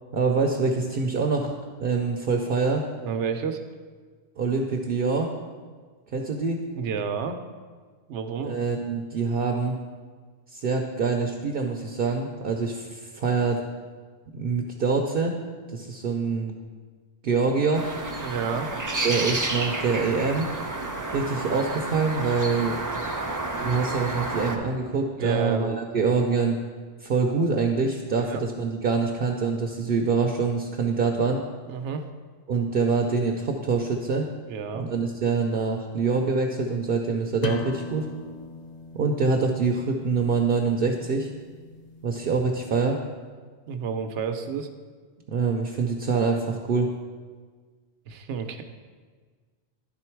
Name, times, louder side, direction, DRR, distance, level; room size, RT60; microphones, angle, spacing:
voice 1, 0.1-1.5 1.8-2.8 4.4-5.3 6.1-6.6 8.4-9.8 10.5-13.6 14.3-15.3 15.7-16.6 17.2-17.9 19.0-20.5 21.1-22.8 23.6-26.6 27.0-31.4 32.5-34.3 34.7-38.1 38.9-41.3 42.0-43.0 45.3-46.9, right 4 dB, 60° right, 3 dB, 0.7 m, -25 dB
voice 2, 3.0-3.6 6.8-7.4 8.1-8.6 18.2-18.7 25.2-25.8 28.2-28.4 31.7-32.0 34.5-34.9 43.7-44.7 48.1-48.6, right 6 dB, 85° right, 7 dB, 0.9 m, -30 dB
sound 1, 17.7-24.6, right 2 dB, 30° right, 0.4 m, -30 dB
sound 2, 37.4-42.8, left 3 dB, 50° left, 0.6 m, -39 dB
11.5 x 3.8 x 4.5 m, 1.5 s
omnidirectional pair, 1.2 m